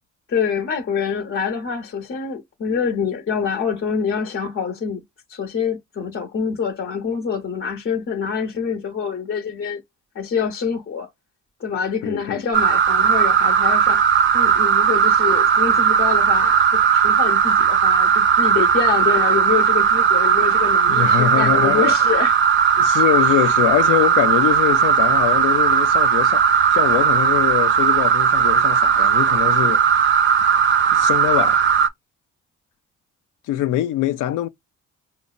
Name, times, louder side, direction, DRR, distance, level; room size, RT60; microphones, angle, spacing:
voice 1, 0.3-5.0 5.3-9.8 10.1-11.1 11.6-14.1 14.3-22.4, left 6 dB, 45° left, 0.9 m, -25 dB
voice 2, 12.0-12.4 20.9-21.9 22.8-26.4 26.7-30.1 30.9-31.6 33.5-34.5, left 13 dB, 85° left, 0.6 m, -23 dB
sound 1, 12.5-31.9, right 7 dB, 40° right, 0.5 m, -17 dB
5.2 x 2.0 x 2.3 m
cardioid pair, 90°, 30 cm